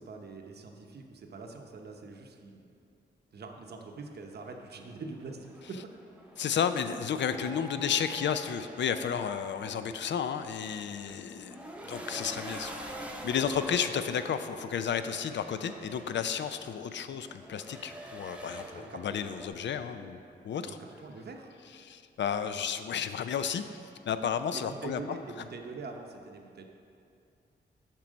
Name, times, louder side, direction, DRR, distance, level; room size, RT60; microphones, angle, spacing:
voice 1, 0.0-2.6 3.3-5.8 7.3-7.5 11.1-11.2 18.7-19.2 20.6-21.5 24.5-26.6, right 3 dB, 60° right, 3 dB, 0.8 m, -44 dB
sound 1, 4.0-19.5, right 1 dB, 5° right, 0.7 m, -46 dB
voice 2, 6.4-11.6 11.9-12.8 13.2-20.2 20.4-20.8 21.8-23.6 24.1-25.0, left 7 dB, 75° left, 10 dB, 0.4 m, -32 dB
7.4 x 6.0 x 5.2 m, 2.5 s
wide cardioid pair, 110°, 19 cm